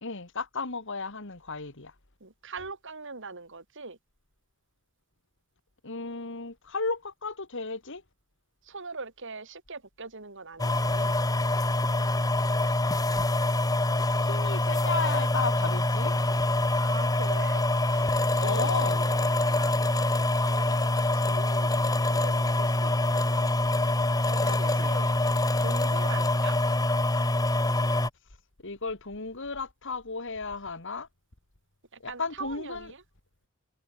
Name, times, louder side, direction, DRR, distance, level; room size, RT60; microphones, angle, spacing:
voice 1, 0.0-1.9 5.8-8.0 14.2-16.1 18.4-19.1 24.4-24.9 28.6-31.1 32.0-32.9, left 4 dB, 60° left, 2.5 m, -34 dB
voice 2, 2.2-4.0 8.7-11.2 16.7-20.9 21.3-21.8 22.1-23.5 24.3-25.2 25.6-26.6 32.1-33.0, right 4 dB, 60° right, 3.6 m, -42 dB
sound 1, 10.6-28.1, left 2 dB, 15° left, 1.3 m, -25 dB
head